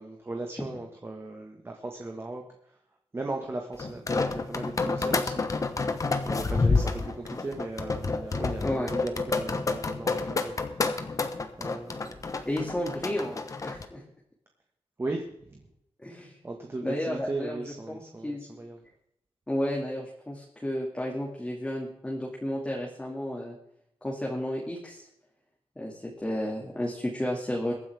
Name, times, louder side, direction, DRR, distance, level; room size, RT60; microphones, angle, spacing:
voice 1, 0.0-2.8 3.1-5.5 6.2-11.1 11.6-12.5 15.0-15.6 16.4-18.8, right 2 dB, 25° right, 2 dB, 1.6 m, -37 dB
sound 1, 3.8-13.9, left 3 dB, 30° left, 1.2 m, -29 dB
voice 2, 12.4-13.3 13.6-14.0 16.0-16.4 16.8-17.6 18.2-18.4 19.5-23.6 24.0-25.1 25.8-27.7, left 1 dB, 10° left, -2 dB, 2.3 m, -32 dB
22.5 x 9.8 x 3.5 m, 0.77 s
wide cardioid pair, 155°, 10 cm